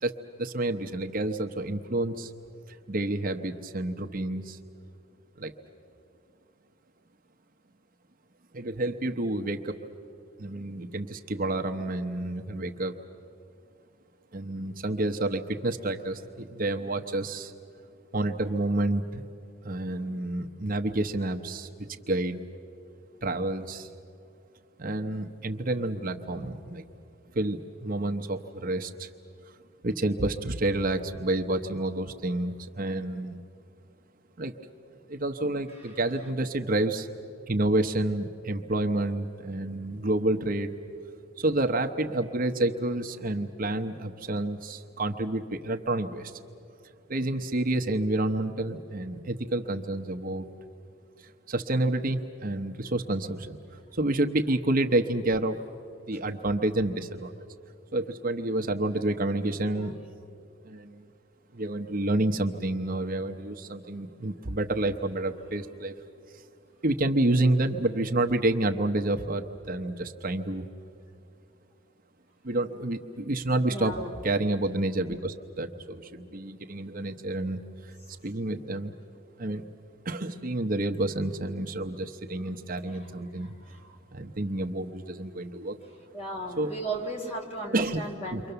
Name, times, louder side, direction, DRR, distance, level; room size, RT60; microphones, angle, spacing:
voice 1, 0.0-2.3 2.7-4.6 5.4-5.5 8.5-9.8 10.4-13.0 14.3-17.5 18.1-19.2 19.6-22.4 23.2-23.9 24.8-26.8 27.3-29.1 29.8-33.4 34.4-34.5 35.1-37.1 37.5-40.8 41.4-46.3 47.1-50.5 51.2-53.6 53.9-55.6 56.1-57.3 57.9-59.9 60.6-61.0 61.5-66.0 66.8-70.7 72.4-77.9 78.2-78.9 79.4-79.6 80.0-83.5 84.1-85.8 86.6-86.7 87.7-88.0 88.3-88.4, right 2 dB, 45° right, 5 dB, 0.9 m, -29 dB
voice 2, 35.7-36.0 59.6-60.0 73.7-74.1 82.9-83.9 86.1-88.5, right 2 dB, 30° left, 1 dB, 3.3 m, -37 dB
29.0 x 24.5 x 6.9 m, 2.6 s
head